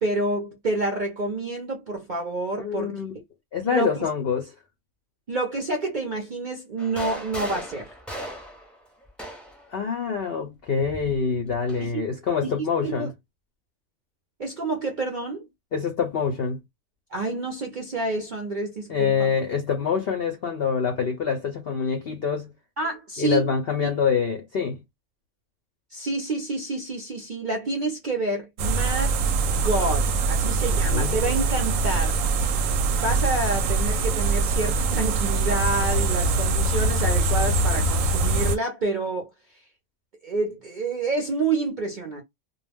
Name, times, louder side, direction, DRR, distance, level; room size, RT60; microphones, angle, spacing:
voice 1, 0.0-3.0 3.7-4.1 5.3-7.9 11.8-11.9 12.4-13.1 14.4-15.5 17.1-19.3 22.8-23.4 23.8-23.9 25.9-32.2 33.0-39.3 40.2-42.2, right 2 dB, 55° right, 0.5 m, -28 dB
voice 2, 2.6-3.2 3.5-4.5 9.7-13.1 15.7-16.6 18.9-22.5 23.2-24.8 30.7-31.2, left 6 dB, 65° left, 0.6 m, -26 dB
sound 1, 6.8-9.7 10.8-11.9, equal, ahead, 0.5 m, -37 dB
sound 2, 28.6-38.6, right 3 dB, 70° right, 0.9 m, -23 dB
2.3 x 2.2 x 3.3 m
omnidirectional pair, 1.5 m